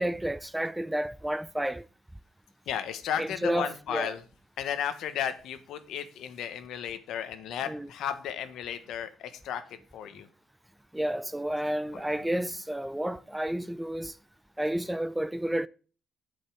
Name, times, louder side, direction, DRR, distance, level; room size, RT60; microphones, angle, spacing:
voice 1, 0.0-1.8 3.2-4.1 7.7-7.9 10.9-14.1 14.6-15.7, right 1 dB, 5° right, 0.4 m, -31 dB
voice 2, 2.7-4.2 4.6-9.6 9.9-10.3 11.9-12.3, left 9 dB, 80° left, 1.2 m, -34 dB
8.4 x 5.3 x 7.6 m
cardioid pair, 90°, 0 cm